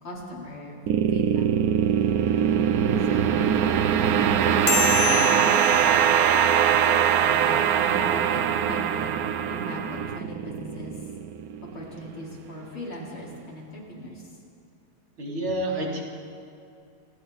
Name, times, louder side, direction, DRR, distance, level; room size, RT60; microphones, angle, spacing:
voice 1, 0.0-0.8 1.1-1.4 3.0-3.5 5.0-5.7 6.2-9.2 9.4-10.9 11.7-14.4, left 1 dB, 90° left, -4 dB, 5.5 m, -38 dB
sound 1, 0.9-12.1, right 8 dB, 60° right, 1.0 m, -22 dB
sound 2, 4.7-7.5, left 8 dB, 70° left, 2.2 m, -30 dB
voice 2, 15.2-16.0, right 1 dB, 80° right, -3 dB, 4.8 m, -28 dB
29.0 x 28.5 x 4.2 m, 2.6 s
omnidirectional pair, 2.2 m